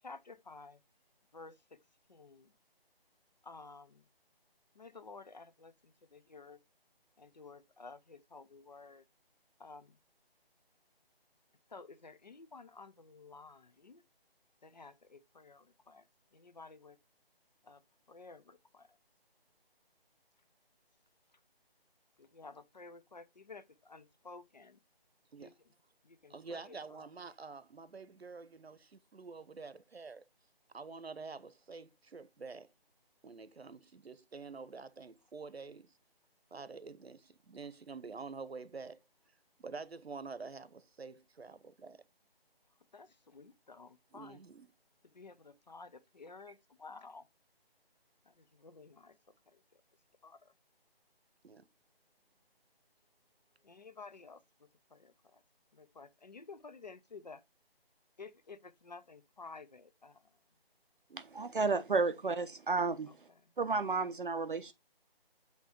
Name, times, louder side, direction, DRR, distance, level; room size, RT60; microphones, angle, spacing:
voice 1, 0.0-0.8 1.3-1.6 2.1-2.5 3.4-4.0 4.8-6.6 7.2-9.0 9.6-10.0 11.7-14.0 14.6-16.0 16.3-17.0 17.6-17.8 18.1-18.9 22.2-24.8 25.4-25.5 26.0-27.1 42.9-44.4 45.1-47.3 48.3-49.1 49.5-49.6 50.2-50.4 53.6-54.4 54.9-55.4 55.7-57.4 58.2-60.2, left 4 dB, 45° left, 0.7 m, -53 dB
voice 2, 26.3-30.2 30.7-32.7 33.2-35.9 36.5-39.0 39.6-42.0 44.1-44.7 51.4-51.7 61.1-61.2, right 4 dB, 80° right, 1.0 m, -47 dB
voice 3, 61.2-63.1 63.6-64.7, right 4 dB, 60° right, 0.7 m, -32 dB
8.4 x 3.0 x 5.0 m
figure-of-eight pair, 165°, 30 cm